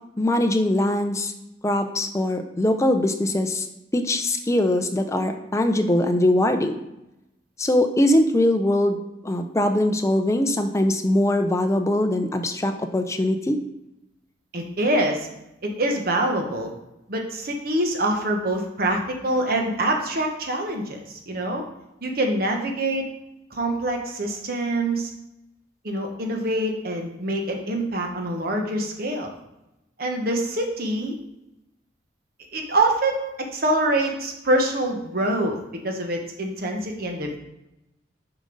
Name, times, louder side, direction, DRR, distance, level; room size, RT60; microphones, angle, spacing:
voice 1, 0.2-1.3 1.6-3.7 3.9-6.7 7.6-9.0 9.2-13.6, left 1 dB, 15° left, 7 dB, 0.5 m, -22 dB
voice 2, 14.5-15.3 15.6-16.7 17.1-21.6 22.0-23.0 23.5-25.1 25.8-29.3 30.0-31.1 32.5-35.6 35.8-37.4, right 1 dB, 55° right, 2 dB, 1.0 m, -25 dB
6.8 x 5.2 x 3.9 m, 0.89 s
head